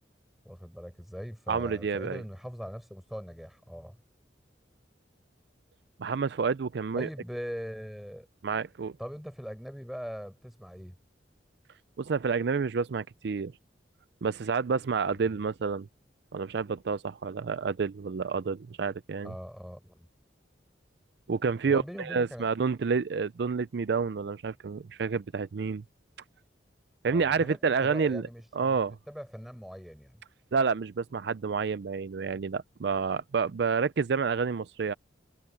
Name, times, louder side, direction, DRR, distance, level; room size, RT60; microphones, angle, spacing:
voice 1, 0.4-4.0 6.9-8.3 9.0-11.0 15.2-15.4 19.2-20.1 21.7-22.5 27.1-30.2, equal, ahead, 7.5 m, -41 dB
voice 2, 1.5-2.2 6.0-7.1 8.4-8.9 12.0-13.5 14.2-15.9 16.3-19.3 21.3-25.8 27.0-28.2 28.5-29.0 30.5-34.9, right 5 dB, 60° right, 0.4 m, -29 dB
head